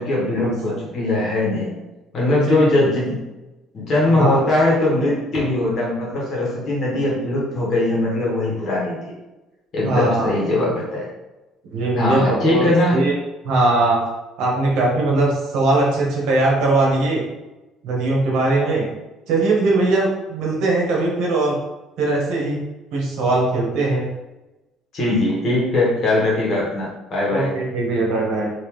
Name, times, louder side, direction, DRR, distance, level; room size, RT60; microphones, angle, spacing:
voice 1, 0.0-1.7 2.1-3.2 3.7-9.0 9.7-11.1 11.9-13.0 24.9-27.5, left 2 dB, 40° left, -5 dB, 1.4 m, -20 dB
voice 2, 4.0-4.4 9.8-10.3 11.7-13.1 13.4-14.0 14.4-17.2 17.8-18.9 19.3-21.5 22.0-22.6 22.9-24.0 27.3-28.5, right 2 dB, 70° right, -3 dB, 1.2 m, -20 dB
3.7 x 2.9 x 3.1 m, 1.0 s
cardioid pair, 155°, 0 cm